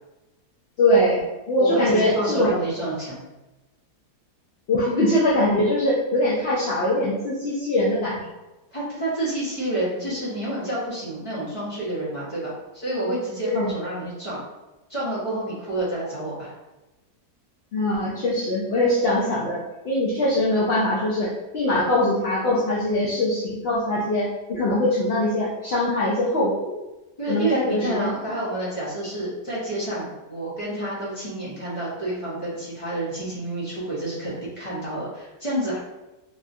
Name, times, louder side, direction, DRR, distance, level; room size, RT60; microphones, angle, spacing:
voice 1, 0.8-2.5 4.7-8.3 13.4-13.7 17.7-26.8 27.3-28.1, left 1 dB, 70° left, -7 dB, 0.5 m, -22 dB
voice 2, 1.6-3.2 8.7-14.4 14.9-16.5 27.2-35.8, right 1 dB, 25° left, -8 dB, 0.9 m, -29 dB
3.5 x 2.4 x 2.6 m, 1.0 s
omnidirectional pair, 1.7 m